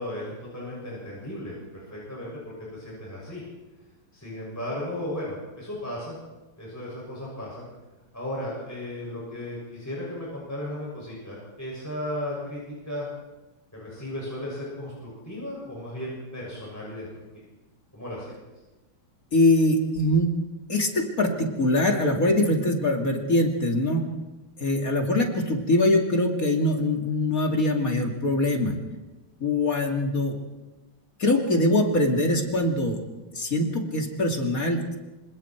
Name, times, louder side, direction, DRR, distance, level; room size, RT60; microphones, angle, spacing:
voice 1, 0.0-3.4 4.1-6.1 6.6-7.7 8.1-13.1 13.7-17.1 17.3-17.4 17.9-18.4, left 1 dB, 10° left, -5 dB, 6.8 m, -35 dB
voice 2, 19.3-20.3 20.7-24.1 24.6-28.8 29.4-30.4 31.2-33.0 33.3-35.0, left 1 dB, 45° left, 2 dB, 2.9 m, -23 dB
27.0 x 26.0 x 4.6 m, 1.1 s
omnidirectional pair, 2.2 m